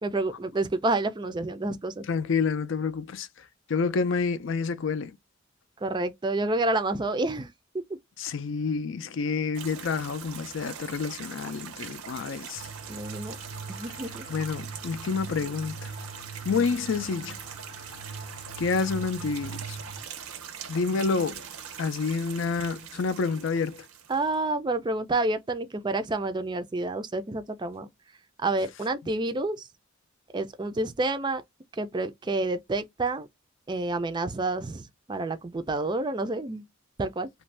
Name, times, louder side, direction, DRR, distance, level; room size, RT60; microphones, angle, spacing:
voice 1, 0.0-2.1 5.8-7.8 12.9-13.4 13.7-14.3 24.1-27.9 28.4-29.7 30.3-31.4 31.7-33.3 33.7-36.6 37.0-37.3, right 2 dB, 20° right, 0.4 m, -29 dB
voice 2, 2.1-3.3 3.7-5.2 8.2-12.7 14.3-15.9 16.4-17.4 18.6-19.8 20.7-21.5 21.8-23.9, left 5 dB, 60° left, 0.4 m, -28 dB
sound 1, 9.5-24.3, right 8 dB, 85° right, 0.6 m, -42 dB
sound 2, 12.6-20.0, right 3 dB, 80° left, 0.8 m, -42 dB
2.6 x 2.2 x 3.2 m
head